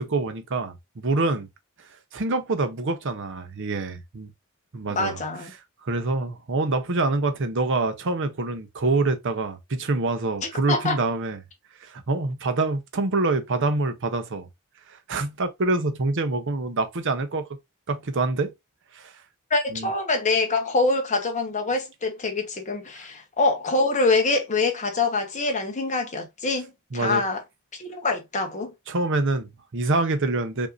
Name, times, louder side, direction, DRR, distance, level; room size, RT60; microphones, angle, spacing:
voice 1, 0.0-1.5 2.1-4.3 4.7-5.2 5.8-11.4 11.8-14.5 15.1-17.5 17.9-18.5 18.9-19.1 19.7-19.9 26.9-27.2 28.9-30.7, right 3 dB, 60° right, 0.8 m, -26 dB
voice 2, 4.9-5.5 10.7-11.0 19.5-27.4 27.8-28.7, left 3 dB, 35° left, 1.0 m, -25 dB
5.1 x 2.8 x 2.5 m
head